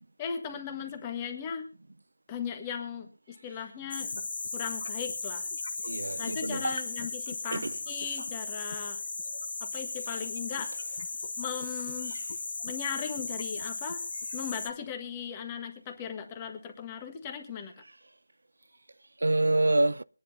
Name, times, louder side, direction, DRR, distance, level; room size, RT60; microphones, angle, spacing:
voice 1, 0.2-1.7 2.3-4.1 4.5-5.5 6.2-9.0 9.6-10.7 11.4-12.1 12.6-14.0 14.3-17.7, left 7 dB, 15° left, 1.4 m, -37 dB
sound 1, 3.9-14.7, left 3 dB, 50° left, 1.3 m, -36 dB
voice 2, 5.8-6.8 7.5-7.8 12.1-12.2 19.2-20.0, right 2 dB, 75° right, 0.5 m, -26 dB
23.0 x 10.0 x 2.7 m
figure-of-eight pair, 170°, 0 cm